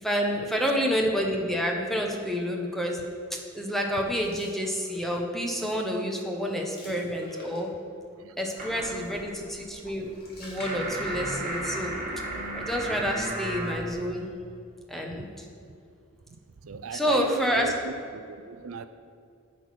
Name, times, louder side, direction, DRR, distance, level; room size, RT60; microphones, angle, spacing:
voice 1, 0.0-3.0 3.3-7.7 8.4-10.1 10.4-11.9 12.5-14.3 14.9-15.5 16.9-17.7, equal, ahead, 1 dB, 1.1 m, -29 dB
sound 1, 4.0-5.3 5.7-6.0 6.3-8.0 9.8-11.5 11.9-12.0 12.8-13.7, left 1 dB, 50° left, 2.4 m, -49 dB
sound 2, 8.6-13.9, right 1 dB, 40° right, 1.6 m, -34 dB
voice 2, 12.8-13.3 15.1-15.2 16.3-18.9, right 4 dB, 75° right, 11 dB, 0.5 m, -39 dB
10.0 x 6.4 x 6.0 m, 2.4 s
head